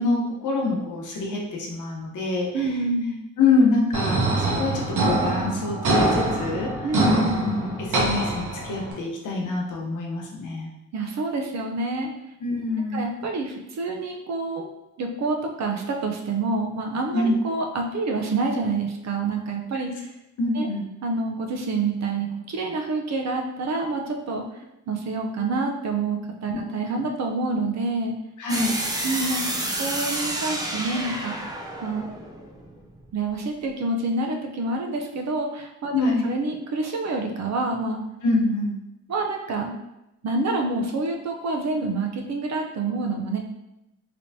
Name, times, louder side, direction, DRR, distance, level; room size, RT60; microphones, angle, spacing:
voice 1, 0.0-2.8 3.4-6.9 7.6-10.7 12.4-13.0 17.1-17.3 20.4-20.8 26.5-26.6 28.4-28.7 35.9-36.3 38.2-38.7, left 3 dB, 75° left, -1 dB, 0.9 m, -25 dB
voice 2, 2.5-3.2 6.8-7.4 10.9-12.1 12.9-14.7 15.0-20.1 20.5-20.7 21.0-24.4 24.9-28.2 29.0-31.4 31.8-32.1 33.1-38.0 39.1-39.7 40.2-43.4, right 3 dB, 60° right, 2 dB, 0.6 m, -27 dB
sound 1, 3.9-8.9, right 2 dB, 75° right, 1.0 m, -24 dB
sound 2, 28.5-33.3, right 1 dB, 15° right, 0.4 m, -30 dB
3.3 x 3.0 x 2.7 m, 0.90 s
cardioid pair, 115°, 31 cm